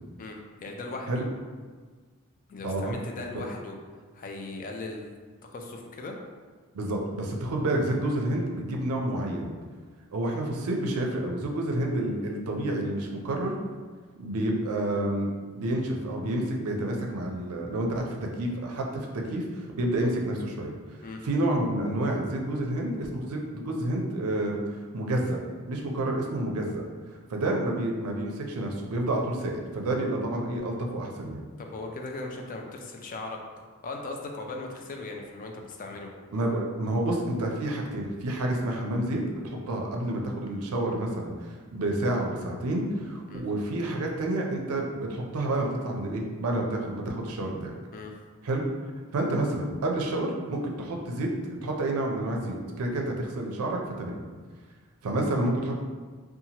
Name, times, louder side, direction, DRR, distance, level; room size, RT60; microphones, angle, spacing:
voice 1, 0.2-1.3 2.5-3.7 4.1-5.2 5.4-6.1 21.0-21.2 31.6-33.4 33.8-36.1 43.3-43.4 47.9-48.1, left 2 dB, 40° left, 2 dB, 0.3 m, -38 dB
voice 2, 2.6-3.0 6.7-9.5 10.1-13.6 14.2-20.7 21.2-24.6 24.9-25.4 25.7-31.4 36.3-47.7 48.4-48.6 49.1-54.2 55.0-55.7, right 1 dB, 85° right, 1 dB, 0.5 m, -29 dB
2.8 x 2.3 x 2.8 m, 1.5 s
head